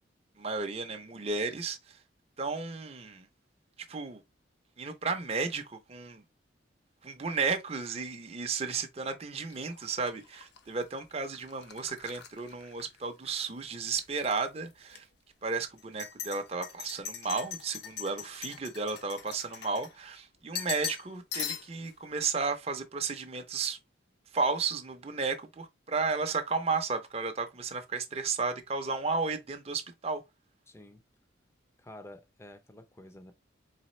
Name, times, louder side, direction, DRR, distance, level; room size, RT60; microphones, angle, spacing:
voice 1, 0.4-2.0 2.4-3.3 3.9-4.2 4.8-6.2 7.0-15.1 15.4-23.8 24.3-30.2, right 4 dB, 30° right, 0.6 m, -33 dB
sound 1, 9.5-13.5 13.8-14.4 14.9-15.0 15.8-20.2 20.5-21.1 21.3-21.9, left 8 dB, 55° left, 0.7 m, -41 dB
voice 2, 30.7-31.0 31.8-33.3, left 1 dB, 15° left, 0.5 m, -50 dB
4.1 x 3.4 x 3.1 m
head